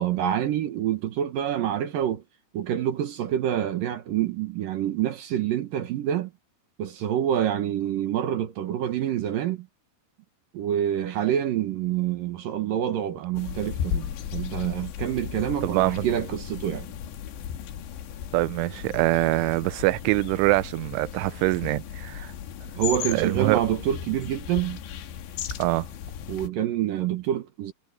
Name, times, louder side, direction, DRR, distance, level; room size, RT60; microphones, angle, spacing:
voice 1, 0.0-2.2 2.5-6.3 6.8-9.7 10.5-16.9 22.8-24.8 26.3-27.7, right 10 dB, 65° right, 2.3 m, -27 dB
sound 1, 13.4-26.5, left 9 dB, 70° left, 3.7 m, -36 dB
voice 2, 15.6-16.1 18.3-22.3 23.1-23.6 25.6-25.9, right 20 dB, 85° right, 3.1 m, -24 dB
omnidirectional pair, 5.5 m